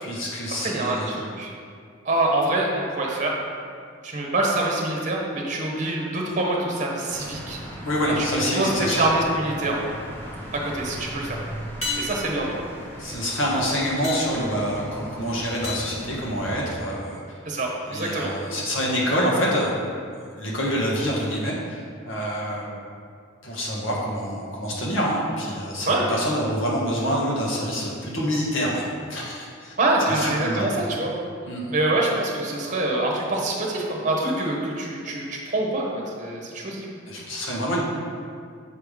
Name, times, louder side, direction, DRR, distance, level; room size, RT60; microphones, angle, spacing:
voice 1, 0.0-1.2 7.8-9.0 13.0-17.4 17.9-19.8 20.1-22.7 23.4-29.7 30.0-30.7 31.5-31.7 37.1-37.8, equal, 70° left, -4 dB, 1.4 m, -26 dB
voice 2, 0.6-1.5 2.0-3.3 4.0-7.6 8.2-8.3 8.5-9.8 10.5-11.4 12.0-12.5 17.4-18.3 25.9-26.1 29.8-31.1 31.7-36.9, right 2 dB, 35° right, -2 dB, 1.0 m, -25 dB
sound 1, 7.1-16.8, equal, 10° left, 0.8 m, -38 dB
sound 2, 11.8-17.0 21.4-21.5, left 3 dB, 30° left, 1.2 m, -36 dB
7.2 x 3.4 x 5.0 m, 2.2 s
head